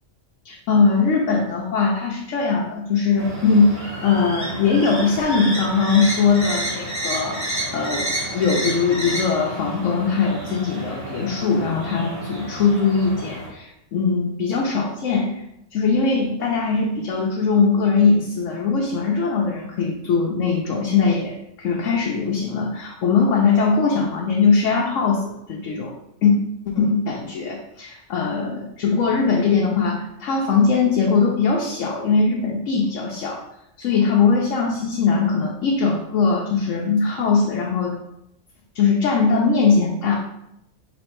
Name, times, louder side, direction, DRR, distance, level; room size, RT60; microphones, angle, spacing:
voice 1, 0.4-8.1 8.3-15.4 15.7-25.9 26.2-26.3 26.7-33.4 33.8-38.0 38.7-40.1, left 5 dB, 80° left, -2 dB, 1.0 m, -20 dB
sound 1, 3.2-13.5, right 1 dB, 15° right, 1.1 m, -30 dB
3.5 x 3.1 x 4.5 m, 0.80 s
omnidirectional pair, 1.3 m